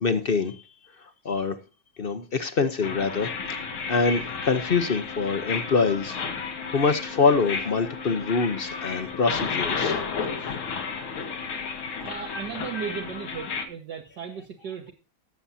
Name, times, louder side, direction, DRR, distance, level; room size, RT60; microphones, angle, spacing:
voice 1, 0.0-0.6 1.0-1.6 2.0-6.2 6.7-10.0, left 4 dB, 50° left, 9 dB, 0.6 m, -25 dB
sound 1, 2.8-13.7, left 5 dB, 90° left, 2.2 m, -32 dB
voice 2, 12.0-14.9, right 7 dB, 60° right, 1 dB, 1.8 m, -36 dB
18.5 x 7.1 x 2.7 m, 0.33 s
omnidirectional pair, 2.2 m